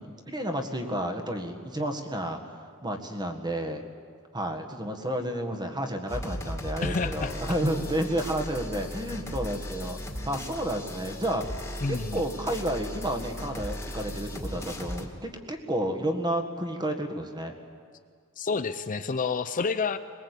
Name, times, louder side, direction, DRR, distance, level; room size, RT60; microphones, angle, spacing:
voice 1, 0.0-2.4 2.8-3.8 4.3-10.0 10.3-11.4 11.9-17.5, right 1 dB, 20° right, 5 dB, 1.7 m, -31 dB
sound 1, 6.1-15.1, equal, 10° left, 2.0 m, -37 dB
voice 2, 6.8-7.3 11.8-12.2 18.4-20.0, left 4 dB, 35° left, 10 dB, 0.6 m, -29 dB
22.0 x 20.5 x 8.4 m, 2.1 s
head